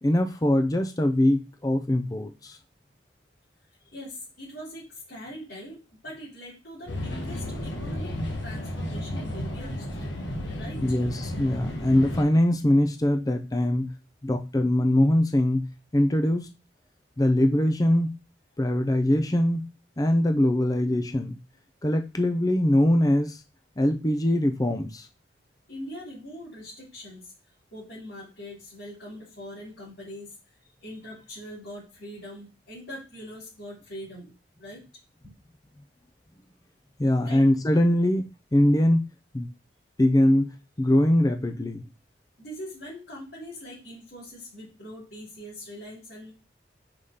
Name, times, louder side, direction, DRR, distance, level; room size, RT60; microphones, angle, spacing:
voice 1, 0.0-2.6 10.8-13.9 14.2-15.7 15.9-16.5 17.2-18.1 18.6-19.7 20.0-21.4 21.8-23.4 23.8-25.1 37.0-38.3 38.5-39.1 39.3-39.5 40.0-41.9, left 1 dB, 20° left, 0.5 m, -22 dB
voice 2, 3.9-10.1 10.6-10.9 25.7-27.3 27.7-30.3 30.8-34.3 34.6-34.8 35.2-35.3 37.2-37.6 42.4-46.3, equal, 65° left, 2.9 m, -42 dB
sound 1, 6.9-12.2, left 1 dB, 90° left, 1.4 m, -33 dB
4.9 x 3.7 x 5.6 m
head